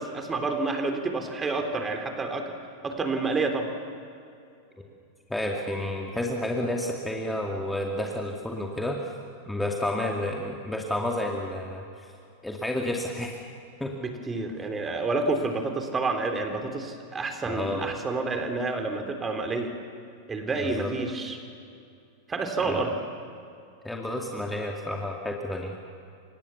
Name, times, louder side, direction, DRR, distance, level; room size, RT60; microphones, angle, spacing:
voice 1, 0.0-2.5 2.8-3.7 14.0-19.7 20.3-21.4 22.3-22.9, right 3 dB, 15° right, 5 dB, 3.5 m, -29 dB
voice 2, 5.3-9.0 9.5-11.8 12.4-13.4 13.8-13.9 17.5-17.9 20.6-20.9 22.6-22.9 23.8-25.7, left 1 dB, 5° left, 0 dB, 2.4 m, -30 dB
30.0 x 26.0 x 7.2 m, 2.5 s
figure-of-eight pair, 90°, 0 cm